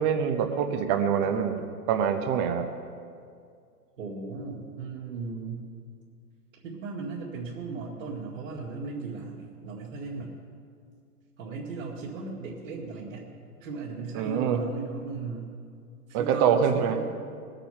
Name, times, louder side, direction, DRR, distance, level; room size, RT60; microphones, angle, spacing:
voice 1, 0.0-2.7 14.1-14.6 16.1-17.0, right 7 dB, 25° right, 7 dB, 0.8 m, -25 dB
voice 2, 4.0-5.6 6.6-10.4 11.4-13.3 13.6-15.5 16.1-17.1, right 4 dB, 55° right, -5 dB, 2.2 m, -37 dB
20.0 x 9.0 x 5.7 m, 2.3 s
figure-of-eight pair, 120°, 47 cm